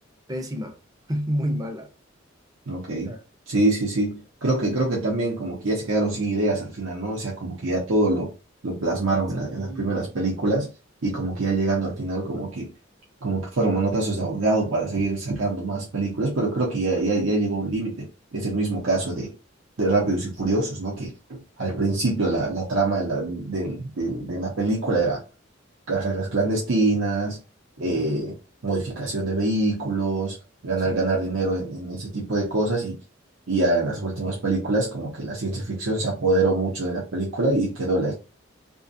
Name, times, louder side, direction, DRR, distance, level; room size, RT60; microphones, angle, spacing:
voice 1, 0.3-0.8 1.1-1.9 3.0-3.2 9.5-10.1 27.8-28.2 30.8-31.0, equal, 20° right, 0.4 m, -30 dB
voice 2, 2.7-3.1 3.5-8.3 8.6-10.7 11.0-12.7 13.2-18.1 18.3-19.3 19.8-25.2 25.9-27.4 27.8-28.3 28.6-30.3 30.6-32.9 33.5-38.1, right 2 dB, 90° right, 0.8 m, -25 dB
2.4 x 2.3 x 2.5 m
head